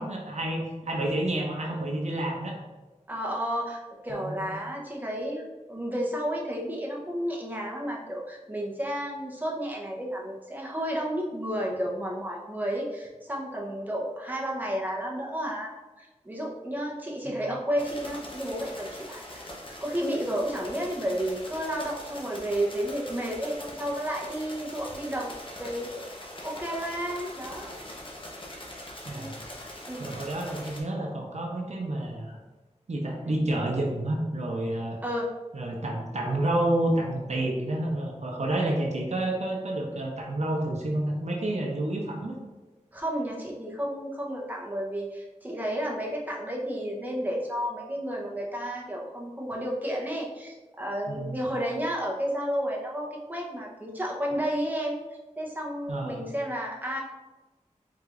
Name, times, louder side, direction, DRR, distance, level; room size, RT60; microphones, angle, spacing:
voice 1, 0.0-2.6 4.2-4.5 17.2-17.4 29.1-29.4 30.0-32.4 32.9-35.0 35.5-42.4 51.1-51.5 55.9-56.2, right 1 dB, 65° right, 0 dB, 0.7 m, -29 dB
voice 2, 3.1-15.7 16.0-25.3 25.6-26.0 26.4-27.8 29.1-29.3 29.9-30.0 33.2-33.4 35.0-35.3 42.9-55.0 55.4-57.0, equal, 15° right, -2 dB, 0.8 m, -32 dB
sound 1, 17.8-30.8, left 1 dB, 45° left, 0.9 m, -42 dB
4.7 x 3.8 x 2.5 m, 1.2 s
wide cardioid pair, 65°, 13 cm